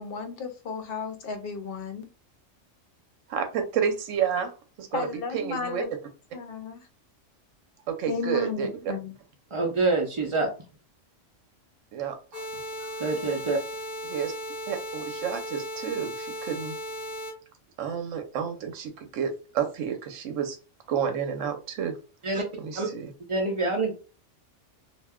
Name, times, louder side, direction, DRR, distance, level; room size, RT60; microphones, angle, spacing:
voice 1, 0.0-2.1 4.9-5.9 6.3-6.9 8.1-9.1, left 5 dB, 60° left, 0.7 m, -34 dB
voice 2, 3.3-4.5 4.8-5.1 5.3-5.8 7.9-8.9 11.9-12.6 14.1-14.3 14.7-16.8 17.8-20.6 20.9-22.0 22.6-23.1, right 8 dB, 80° right, 0.9 m, -30 dB
voice 3, 9.5-10.5 12.8-13.6 22.2-22.4 22.8-22.9 23.3-23.9, right 3 dB, 55° right, 0.3 m, -26 dB
sound 1, 12.3-17.3, equal, 30° left, 0.9 m, -36 dB
2.4 x 2.1 x 3.5 m
omnidirectional pair, 1.3 m